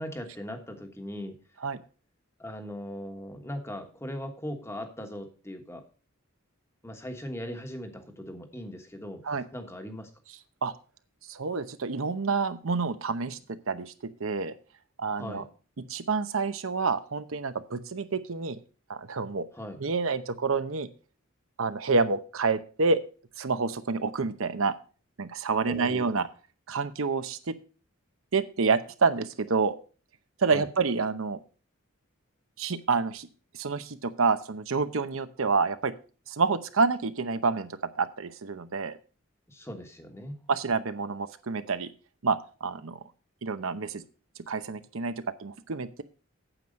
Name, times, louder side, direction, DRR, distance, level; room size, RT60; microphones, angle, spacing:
voice 1, 0.0-1.3 2.4-5.8 6.8-10.1 15.1-15.5 19.5-19.8 25.7-26.3 30.5-30.7 39.5-40.4, equal, 10° left, 6 dB, 1.3 m, -39 dB
voice 2, 11.3-13.9 14.2-14.6 15.0-15.4 15.8-18.6 18.9-19.4 19.8-20.9 21.6-23.0 23.4-24.7 25.2-26.3 26.7-27.6 28.3-29.8 30.4-31.4 32.6-33.3 33.5-35.9 36.3-37.7 37.9-39.0 40.5-41.9 42.2-43.0 43.4-44.0 44.5-46.0, right 4 dB, 70° right, 11 dB, 0.8 m, -28 dB
9.1 x 7.8 x 5.3 m, 0.36 s
head